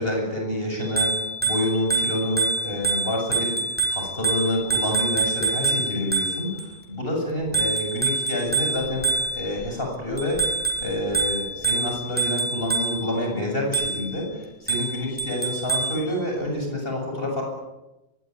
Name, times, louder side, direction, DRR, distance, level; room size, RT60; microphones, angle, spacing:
voice 1, 0.0-17.4, left 1 dB, 65° left, 1 dB, 8.1 m, -28 dB
Bicycle bell, 0.8-6.6 7.5-9.6 10.2-13.1 13.7-14.2 14.7-16.0, right 3 dB, 10° right, 5.5 m, -26 dB
24.0 x 21.0 x 9.9 m, 1.0 s
omnidirectional pair, 1.0 m